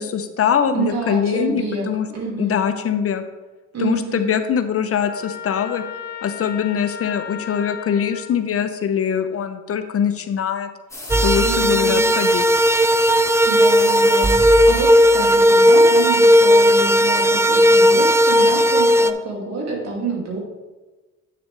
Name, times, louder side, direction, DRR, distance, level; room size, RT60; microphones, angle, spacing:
voice 1, 0.0-2.1 2.4-3.2 3.8-5.8 6.2-10.7 11.2-12.5, left 8 dB, 50° left, 9 dB, 0.6 m, -22 dB
voice 2, 0.7-2.6 3.7-4.4 11.3-12.1 13.5-14.4 14.7-20.4, right 3 dB, 60° right, -1 dB, 2.5 m, -28 dB
Trumpet, 5.0-8.3, left 7 dB, 30° left, 1.2 m, -34 dB
sound 1, 10.9-14.9, left 2 dB, 10° left, 1.8 m, -36 dB
sound 2, 11.1-19.1, equal, 10° right, 0.3 m, -15 dB
8.5 x 6.8 x 3.3 m, 1.2 s
cardioid pair, 90°, 30 cm